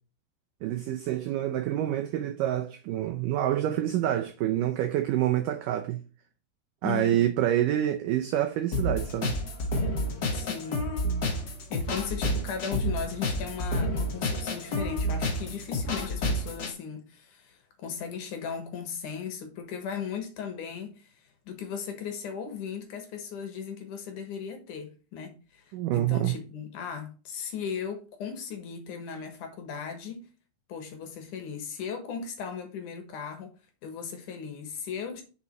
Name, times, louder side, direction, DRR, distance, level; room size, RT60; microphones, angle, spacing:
voice 1, 0.6-6.0 6.8-9.3 25.7-26.3, right 12 dB, 80° right, 1.9 m, -27 dB
voice 2, 6.8-7.3 10.3-10.8 11.7-30.2 30.7-33.5 33.8-35.2, left 7 dB, 60° left, 2.4 m, -37 dB
sound 1, 8.7-16.7, left 1 dB, 80° left, 0.9 m, -30 dB
6.9 x 6.0 x 4.4 m
omnidirectional pair, 4.6 m